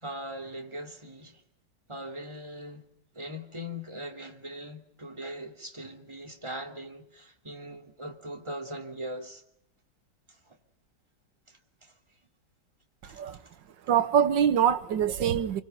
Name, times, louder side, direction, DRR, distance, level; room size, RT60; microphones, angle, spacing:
voice 1, 0.0-1.4 1.9-2.9 3.1-9.4 10.3-10.6 11.5-11.9 13.0-13.4, equal, 15° right, 2.9 m, -40 dB
voice 2, 13.0-13.4 13.8-15.6, right 9 dB, 85° right, 1.9 m, -24 dB
29.5 x 24.5 x 5.7 m
omnidirectional pair, 1.9 m